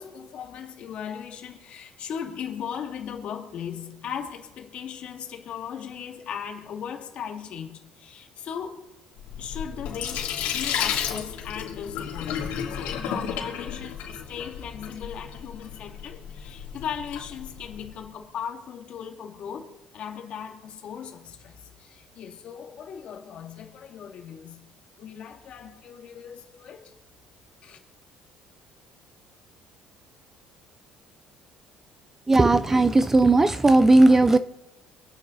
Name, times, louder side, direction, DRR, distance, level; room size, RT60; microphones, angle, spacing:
voice 1, 0.0-8.9 9.4-24.7 25.0-26.9 27.6-27.8, left 8 dB, 50° left, 2.3 m, -38 dB
Sink (filling or washing), 9.2-18.0, left 8 dB, 75° left, 3.3 m, -33 dB
voice 2, 32.3-34.4, right 2 dB, 15° right, 0.5 m, -17 dB
26.0 x 9.4 x 4.0 m
cardioid pair, 150°, 3 cm